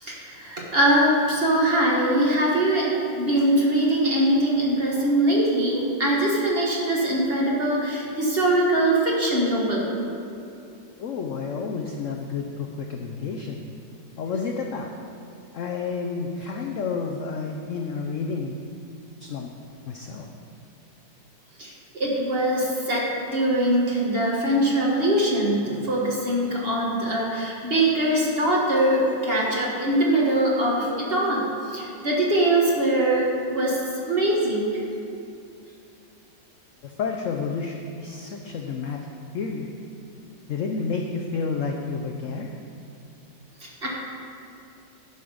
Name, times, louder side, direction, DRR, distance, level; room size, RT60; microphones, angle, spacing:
voice 1, 0.0-9.9 21.6-34.8 43.6-43.9, right 1 dB, 35° right, -3 dB, 1.3 m, -22 dB
voice 2, 11.0-13.7 14.2-14.9 15.5-18.6 19.2-19.5 19.9-20.3 36.8-39.0 39.3-39.7 40.5-42.6, left 5 dB, 75° left, 2 dB, 0.7 m, -30 dB
10.5 x 5.7 x 5.0 m, 2.5 s
omnidirectional pair, 2.0 m